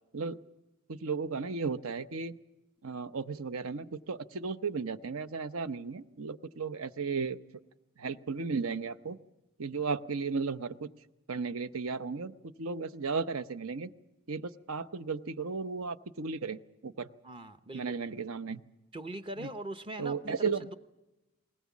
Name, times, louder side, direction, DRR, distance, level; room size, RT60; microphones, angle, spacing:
voice 1, 0.9-2.4 2.8-7.4 8.0-9.2 9.6-10.9 11.3-13.9 14.3-17.1 17.7-18.6 19.4-19.5 20.0-20.6, right 4 dB, 70° right, 14 dB, 0.8 m, -35 dB
voice 2, 17.2-18.0 18.9-20.7, right 1 dB, 25° right, 9 dB, 0.7 m, -41 dB
20.5 x 20.0 x 7.3 m, 1.0 s
head